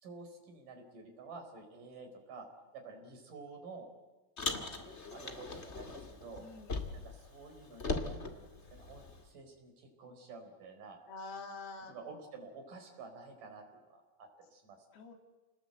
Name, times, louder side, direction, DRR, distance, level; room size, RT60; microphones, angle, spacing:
voice 1, 0.0-2.5 2.7-3.9 4.5-6.5 6.9-11.0 11.9-13.6 13.9-14.9, right 4 dB, 55° right, 3 dB, 6.0 m, -50 dB
Car, 4.4-7.2 7.4-9.2, left 3 dB, 25° left, 1.5 m, -39 dB
voice 2, 6.4-7.0 11.1-11.9 14.9-15.1, left 3 dB, 85° left, 3 dB, 4.8 m, -46 dB
29.5 x 20.0 x 8.0 m, 1.2 s
omnidirectional pair, 4.3 m